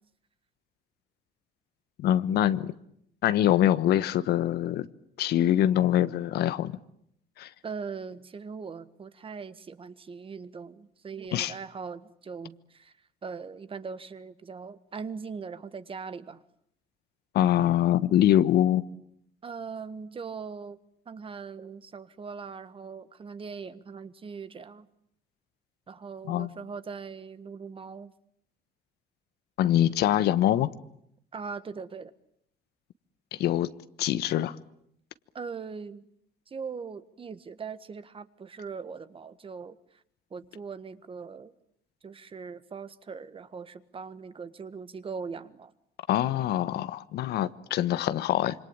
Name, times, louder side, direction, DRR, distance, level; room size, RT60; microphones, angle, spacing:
voice 1, 2.0-2.7 3.2-4.9 5.2-6.7 7.4-7.5 11.3-11.5 17.3-18.9 26.3-26.5 29.6-30.7 33.3-33.7 34.0-34.5 46.1-48.5, left 12 dB, 75° left, 1.3 m, -24 dB
voice 2, 7.6-12.9 13.2-16.4 19.4-20.8 21.0-24.9 25.9-28.1 31.3-32.1 35.3-36.1 36.5-40.0 40.3-41.5 42.0-45.7, right 5 dB, 30° right, 1.6 m, -40 dB
27.0 x 25.0 x 8.9 m
cardioid pair, 110°, 17 cm